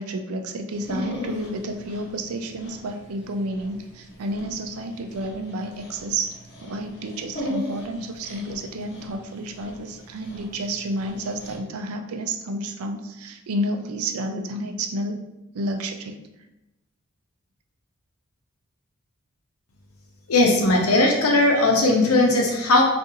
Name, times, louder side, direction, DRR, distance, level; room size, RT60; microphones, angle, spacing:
voice 1, 0.0-6.3 6.6-15.3 15.5-16.2, right 1 dB, 80° right, 5 dB, 0.4 m, -30 dB
Dog, 0.7-11.6, left 1 dB, 50° left, 0.8 m, -38 dB
voice 2, 20.3-22.8, left 2 dB, 85° left, 0 dB, 0.7 m, -18 dB
2.7 x 2.5 x 3.8 m, 0.97 s
head